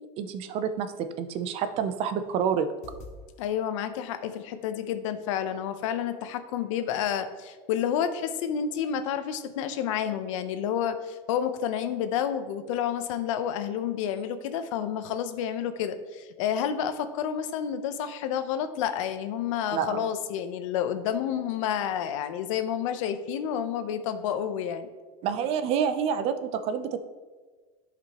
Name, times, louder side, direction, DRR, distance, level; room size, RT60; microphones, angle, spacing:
voice 1, 0.2-2.7 19.7-20.1 25.2-27.0, right 7 dB, 40° right, 10 dB, 0.5 m, -28 dB
sound 1, 2.7-3.2 3.8-4.8 5.9-6.0 6.5-6.8 7.2-7.5 7.9-8.0, left 2 dB, 45° left, 1.0 m, -50 dB
voice 2, 3.4-24.9, left 9 dB, 90° left, 10 dB, 0.7 m, -30 dB
11.0 x 5.0 x 2.9 m, 1.4 s
cardioid pair, 160°, 16 cm